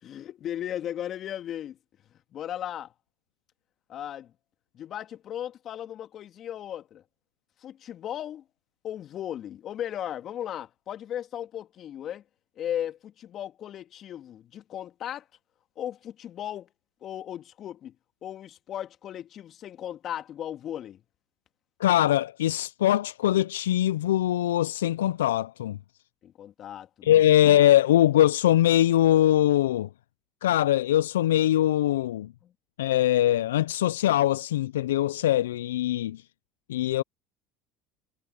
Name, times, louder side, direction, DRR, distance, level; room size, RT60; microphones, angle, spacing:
voice 1, 0.0-1.8 2.3-2.9 3.9-4.3 4.7-7.0 7.6-8.4 8.8-12.2 12.6-15.3 15.8-16.7 17.0-17.9 18.2-21.0 26.2-27.2 32.4-32.5, left 10 dB, 50° left, 2.5 m, -36 dB
voice 2, 21.8-25.8 27.0-29.9 30.4-32.3 32.8-36.2 36.7-37.0, left 12 dB, 85° left, 0.4 m, -22 dB
hypercardioid pair, 70°, 0 cm